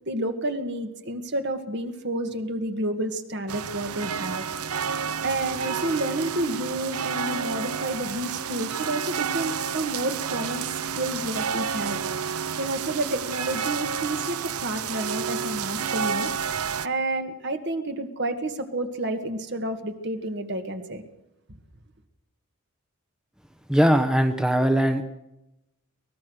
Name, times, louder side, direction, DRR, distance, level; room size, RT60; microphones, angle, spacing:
voice 1, 0.1-4.5 4.9-12.0 12.6-16.3 16.8-21.0, right 1 dB, 50° right, 6 dB, 2.0 m, -30 dB
sound 1, 3.5-16.9, right 7 dB, 85° right, 0.8 m, -30 dB
voice 2, 23.7-25.0, equal, 5° right, 6 dB, 1.0 m, -20 dB
24.0 x 19.0 x 6.4 m, 0.90 s
head